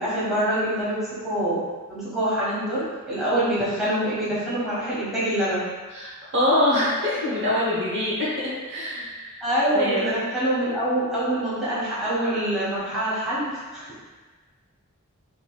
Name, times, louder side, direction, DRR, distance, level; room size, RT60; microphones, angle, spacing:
voice 1, 0.0-1.6 1.9-5.6 9.4-13.8, right 1 dB, ahead, -11 dB, 1.4 m, -25 dB
voice 2, 5.9-8.3 8.7-9.4 9.7-10.3, left 1 dB, 55° right, -7 dB, 1.0 m, -24 dB
5.1 x 3.1 x 2.3 m, 1.3 s
head